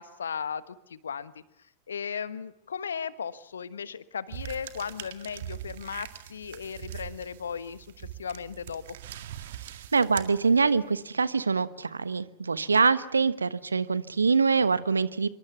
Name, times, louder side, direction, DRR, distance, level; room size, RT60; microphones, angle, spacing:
voice 1, 0.0-1.3 1.9-8.9, left 7 dB, 70° left, 15 dB, 1.3 m, -36 dB
sound 1, 4.3-11.0, right 12 dB, 55° right, 2.0 m, -42 dB
voice 2, 9.9-15.3, right 5 dB, 75° right, 16 dB, 1.2 m, -24 dB
26.5 x 23.5 x 7.1 m, 0.76 s
figure-of-eight pair, 90°, 0 cm